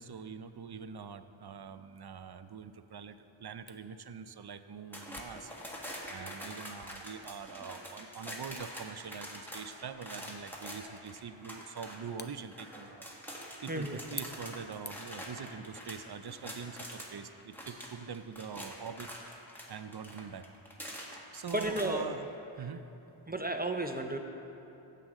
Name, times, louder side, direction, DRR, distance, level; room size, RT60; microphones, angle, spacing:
voice 1, 0.0-5.5 6.1-13.1 13.6-19.1 19.7-20.5 21.3-22.3 22.6-22.8, right 6 dB, 50° right, 11 dB, 0.5 m, -44 dB
Camera, 3.7-15.3, left 3 dB, 20° left, 0.6 m, -52 dB
sound 1, 4.9-17.1 17.4-22.0, equal, 5° left, 1.7 m, -45 dB
voice 2, 13.7-14.0 21.5-22.1 23.3-24.2, right 1 dB, 20° right, 5 dB, 0.8 m, -33 dB
15.0 x 7.8 x 3.7 m, 2.9 s
wide cardioid pair, 45°, 50 cm